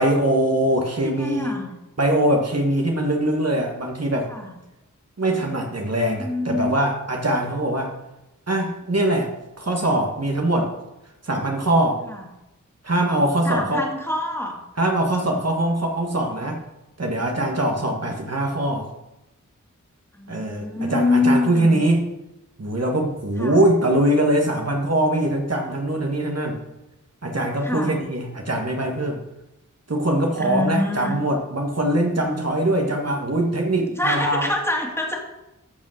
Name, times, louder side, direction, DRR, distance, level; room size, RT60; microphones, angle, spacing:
voice 1, 0.0-1.6 2.0-4.3 5.2-7.9 8.5-9.3 9.6-10.7 11.2-12.0 12.8-13.8 14.8-16.6 17.0-18.9 20.3-22.1 22.6-26.6 27.2-29.2 29.9-34.5, right 1 dB, 50° right, 1 dB, 1.7 m, -22 dB
voice 2, 1.0-1.7 4.3-4.5 6.2-6.7 12.1-12.2 13.4-14.5 20.2-21.9 23.4-23.6 27.6-28.0 30.4-31.1 34.0-35.2, left 2 dB, 10° left, 0 dB, 2.5 m, -25 dB
13.5 x 5.2 x 6.5 m, 0.95 s
wide cardioid pair, 50°, 32 cm